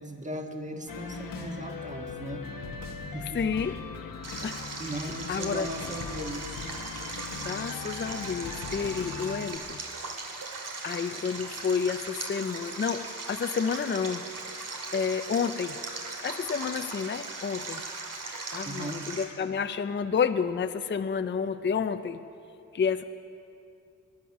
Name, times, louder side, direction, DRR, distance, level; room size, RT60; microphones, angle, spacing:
voice 1, 0.0-2.4 3.0-3.4 4.4-6.5 18.6-19.0, right 1 dB, 20° right, 3 dB, 1.5 m, -38 dB
sound 1, 0.9-9.6, left 5 dB, 80° left, 1.2 m, -40 dB
voice 2, 3.3-3.8 4.4-4.6 5.3-5.7 7.4-9.8 10.8-14.3 14.9-15.8 16.2-17.8 18.5-22.2 22.7-23.0, left 6 dB, 35° left, 10 dB, 0.5 m, -30 dB
Stream, 4.2-19.2, right 3 dB, 75° right, 2.2 m, -38 dB
22.5 x 10.5 x 5.9 m, 2.5 s
wide cardioid pair, 100°, 33 cm